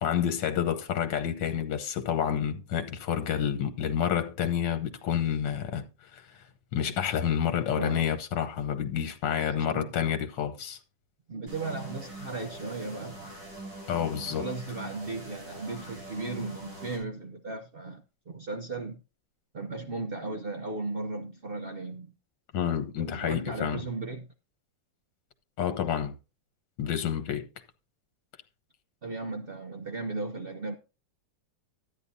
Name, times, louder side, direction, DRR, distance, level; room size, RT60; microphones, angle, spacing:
voice 1, 0.0-6.4 6.7-10.8 13.9-14.5 22.5-23.8 25.6-26.2 26.8-27.5, left 8 dB, 75° left, 1.6 m, -29 dB
voice 2, 7.7-8.1 9.4-9.9 11.3-13.5 14.2-19.0 19.5-22.1 23.0-24.3 29.0-30.8, right 3 dB, 60° right, 0.6 m, -36 dB
sound 1, 11.5-17.0, right 1 dB, 75° right, 5.2 m, -43 dB
12.5 x 9.6 x 2.7 m
omnidirectional pair, 2.0 m